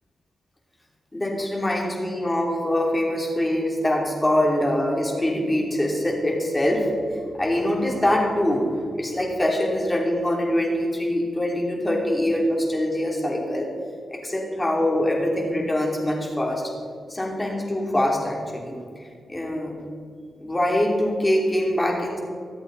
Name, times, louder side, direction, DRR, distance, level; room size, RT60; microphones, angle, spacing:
voice 1, 1.1-6.9 7.3-8.7 9.0-13.7 14.1-16.6 17.1-18.8 19.3-19.7 20.4-22.2, left 1 dB, 20° left, -1 dB, 3.3 m, -23 dB
24.0 x 8.1 x 4.1 m, 2.2 s
cardioid pair, 100°, 0 cm